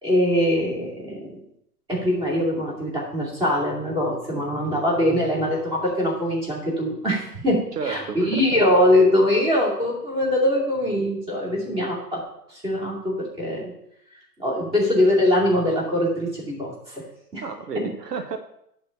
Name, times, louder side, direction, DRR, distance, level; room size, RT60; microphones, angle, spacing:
voice 1, 0.0-1.3 1.9-12.2 12.5-13.7 14.4-17.0 17.3-17.4 17.7-17.9, left 1 dB, 10° right, -5 dB, 2.7 m, -22 dB
voice 2, 7.8-8.6 17.4-18.4, right 5 dB, 70° right, 7 dB, 0.9 m, -31 dB
11.5 x 4.1 x 5.5 m, 0.77 s
figure-of-eight pair, 125°, 50 cm